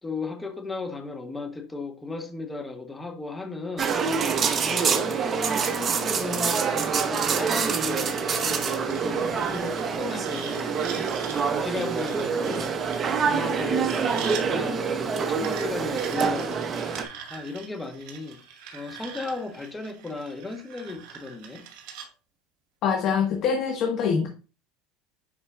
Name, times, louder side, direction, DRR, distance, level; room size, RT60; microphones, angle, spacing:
voice 1, 0.0-4.0 4.6-10.8 11.3-12.8 13.2-16.9 17.3-18.4 18.7-21.6, left 3 dB, 10° left, 1.0 m, -35 dB
sound 1, 3.8-17.0, right 6 dB, 30° right, 0.8 m, -26 dB
sound 2, 5.4-14.5 15.4-22.1, right 7 dB, 70° right, 2.0 m, -43 dB
voice 2, 22.8-24.3, left 6 dB, 50° left, 1.3 m, -24 dB
9.8 x 4.2 x 2.3 m
supercardioid pair, 125°, 0 cm